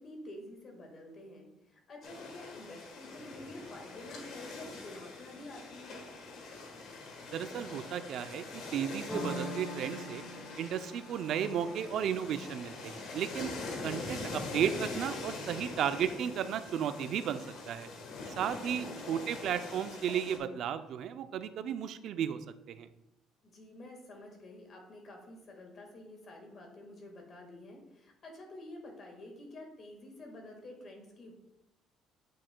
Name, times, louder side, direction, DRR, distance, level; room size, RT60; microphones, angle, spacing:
voice 1, 0.0-6.1 18.5-18.9 23.4-31.3, left 1 dB, 40° left, 2 dB, 1.6 m, -49 dB
sound 1, 2.0-20.4, left 3 dB, 70° left, 1.3 m, -43 dB
voice 2, 7.3-10.2 10.6-13.5 13.8-17.9 18.4-22.4 22.7-22.9, right 9 dB, 60° right, 10 dB, 0.4 m, -34 dB
sound 2, 9.1-14.6, equal, 15° left, 1.1 m, -44 dB
8.4 x 6.2 x 2.2 m, 0.91 s
cardioid pair, 135°, 0 cm